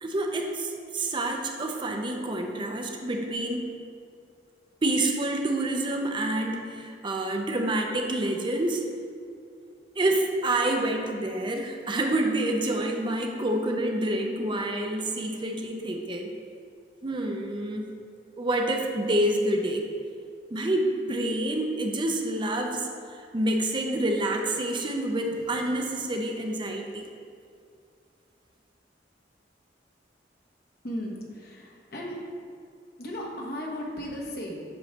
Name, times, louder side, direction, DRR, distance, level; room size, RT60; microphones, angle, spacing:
voice 1, 0.0-3.7 4.8-8.8 10.0-16.3 17.0-17.9 18.4-19.9 20.5-27.0, right 1 dB, 25° right, 3 dB, 0.5 m, -28 dB
voice 2, 30.8-32.2 33.0-34.6, equal, 55° left, -2 dB, 1.1 m, -35 dB
7.8 x 3.1 x 5.7 m, 2.3 s
head